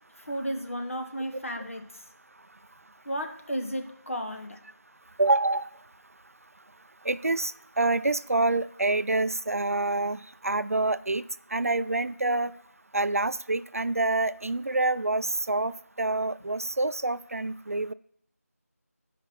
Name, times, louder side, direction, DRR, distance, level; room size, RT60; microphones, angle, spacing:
voice 1, 0.3-2.0 3.0-4.6, equal, 55° left, 3 dB, 1.2 m, -33 dB
voice 2, 5.2-5.7 7.0-11.2 11.5-12.5 12.9-17.9, right 2 dB, 60° right, 15 dB, 0.3 m, -27 dB
10.0 x 5.0 x 3.0 m, 0.69 s
figure-of-eight pair, 175°, 9 cm